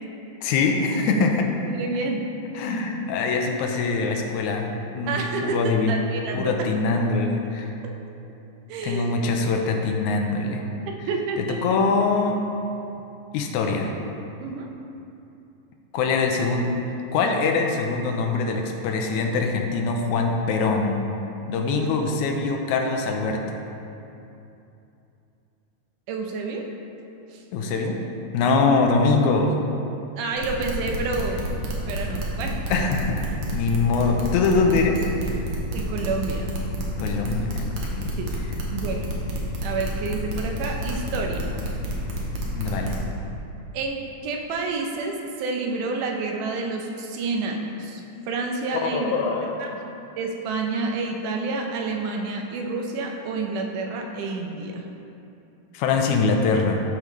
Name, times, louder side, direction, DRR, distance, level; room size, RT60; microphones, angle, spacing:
voice 1, 0.4-1.5 2.6-5.9 6.3-7.7 8.8-10.7 11.4-12.4 13.3-13.9 15.9-16.7 17.1-21.0 21.5-23.6 27.5-28.0 28.3-29.6 32.7-33.2 33.5-35.0 37.0-38.1 42.5-43.0 48.8-49.8 55.7-56.8, left 4 dB, 80° left, 3 dB, 2.0 m, -23 dB
voice 2, 1.7-2.2 5.1-6.5 8.7-9.2 10.9-11.6 14.4-14.7 21.7-21.8 26.1-26.7 27.3-27.4 30.2-31.5 31.9-32.6 35.7-36.5 38.2-38.3 38.7-39.2 39.6-41.5 43.7-49.1 49.6-49.7 50.2-54.8, right 3 dB, 90° right, 2 dB, 2.3 m, -29 dB
sound 1, 30.4-43.0, equal, 70° right, 2.2 m, -29 dB
13.0 x 5.1 x 3.1 m, 2.8 s
omnidirectional pair, 3.5 m